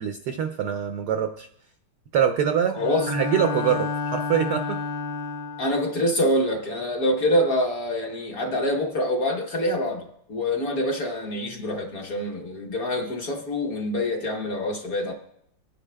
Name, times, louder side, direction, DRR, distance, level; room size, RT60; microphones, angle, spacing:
voice 1, 0.0-1.5 2.1-2.8 3.1-4.8, right 8 dB, 80° right, 7 dB, 0.9 m, -24 dB
voice 2, 2.7-3.1 5.6-15.1, left 1 dB, 55° left, 1 dB, 1.1 m, -25 dB
Bowed string instrument, 2.8-5.9, left 4 dB, 75° left, 1.3 m, -30 dB
25.0 x 9.7 x 2.2 m, 0.74 s
omnidirectional pair, 2.4 m